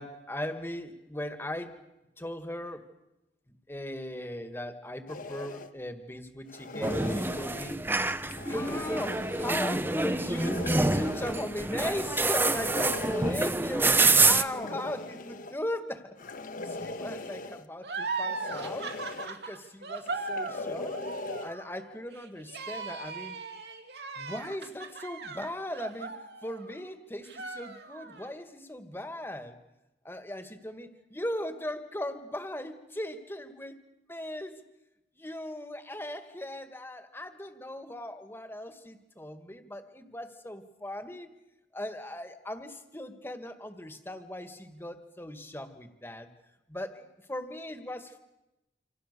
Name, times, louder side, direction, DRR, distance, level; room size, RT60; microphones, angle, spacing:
voice 1, 0.0-1.7 2.2-2.8 3.5-7.9 8.5-16.2 16.6-19.0 19.3-20.9 21.4-23.3 24.2-29.6 30.0-33.8 34.1-34.6 35.2-41.3 41.7-46.3 46.7-48.2, left 1 dB, 15° left, 8 dB, 2.1 m, -38 dB
sound 1, 5.1-5.7 6.5-7.7 8.2-9.6 10.3-11.5 12.2-13.5 14.3-15.6 16.2-17.7 18.2-19.3 20.0-21.5, left 2 dB, 50° left, 1.4 m, -40 dB
sound 2, 6.8-14.4, right 3 dB, 10° right, 0.9 m, -27 dB
sound 3, 17.8-26.9 27.3-28.3, right 4 dB, 65° right, 2.7 m, -38 dB
28.0 x 27.0 x 6.9 m, 0.94 s
head